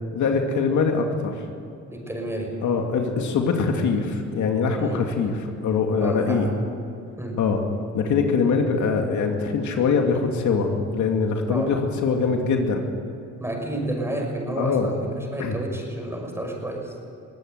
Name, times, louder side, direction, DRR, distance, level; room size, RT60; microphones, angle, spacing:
voice 1, 0.1-1.3 2.6-6.5 7.4-7.6 7.9-12.8 14.6-14.9 15.4-15.6, left 5 dB, 75° left, 3 dB, 2.5 m, -23 dB
voice 2, 1.9-2.6 4.8-5.1 6.0-6.6 7.2-7.4 11.5-11.8 13.4-16.9, right 1 dB, 10° right, 1 dB, 5.8 m, -30 dB
22.5 x 16.5 x 8.0 m, 2.5 s
cardioid pair, 90°, 30 cm